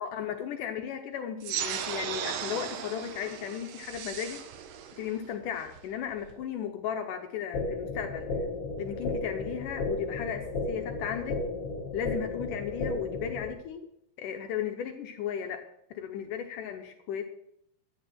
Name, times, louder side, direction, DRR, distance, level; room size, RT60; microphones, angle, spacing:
voice 1, 0.0-4.4 5.0-8.3 8.8-11.4 11.9-13.9 14.2-15.6 15.9-17.2, left 8 dB, 75° left, 5 dB, 2.3 m, -35 dB
sound 1, 1.4-6.4, right 9 dB, 80° right, 2.7 m, -37 dB
sound 2, 7.5-13.5, left 3 dB, 50° left, 2.2 m, -34 dB
12.0 x 10.0 x 6.0 m, 0.77 s
omnidirectional pair, 3.9 m